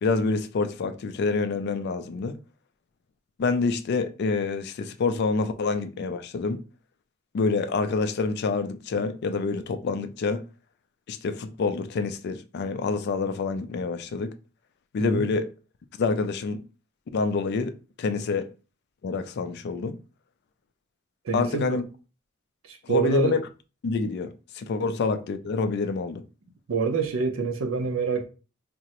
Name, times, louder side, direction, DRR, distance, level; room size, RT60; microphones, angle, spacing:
voice 1, 0.0-2.4 3.4-6.6 7.3-10.4 11.1-14.3 14.9-15.5 16.0-16.6 17.1-18.5 19.0-20.0 21.3-21.8 22.9-23.4 23.8-26.2, left 4 dB, 55° left, 0.3 m, -27 dB
voice 2, 21.2-21.8 22.6-23.4 26.7-28.2, right 5 dB, 70° right, 0.6 m, -27 dB
3.6 x 2.0 x 2.9 m
head